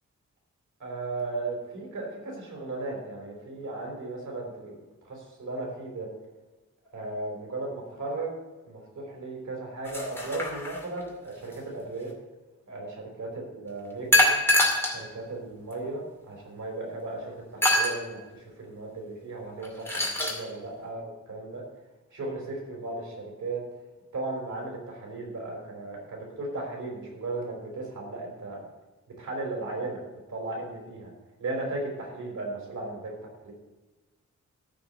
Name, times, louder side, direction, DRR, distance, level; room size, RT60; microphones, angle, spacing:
voice 1, 0.8-4.8 5.0-6.1 6.9-8.3 8.7-12.1 12.7-14.3 14.9-21.6 22.1-23.6 24.1-28.6 29.2-30.0 30.3-31.1 31.4-33.1 33.4-33.5, right 2 dB, 85° right, -1 dB, 4.8 m, -36 dB
sound 1, 9.8-11.0 14.1-15.0 15.7-15.8 17.6-18.0 19.6-20.4, left 1 dB, 10° left, 2.3 m, -24 dB
14.5 x 5.0 x 8.2 m, 1.2 s
wide cardioid pair, 170°, 29 cm